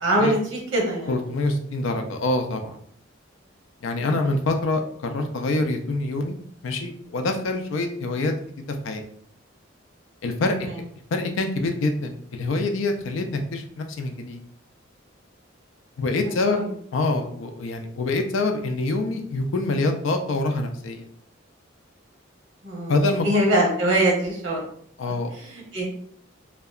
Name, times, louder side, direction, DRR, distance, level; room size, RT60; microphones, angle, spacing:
voice 1, 0.0-1.2 4.0-4.2 10.6-10.7 16.2-16.7 22.6-22.9 23.2-24.6 25.3-25.9, right 1 dB, 75° right, -2 dB, 0.9 m, -23 dB
voice 2, 1.1-2.8 3.8-6.4 6.6-9.0 10.2-10.6 11.1-14.4 16.0-16.6 16.9-21.1 22.9-23.5 25.0-25.3, left 2 dB, 80° left, 5 dB, 0.4 m, -25 dB
2.7 x 2.2 x 2.3 m, 0.63 s
head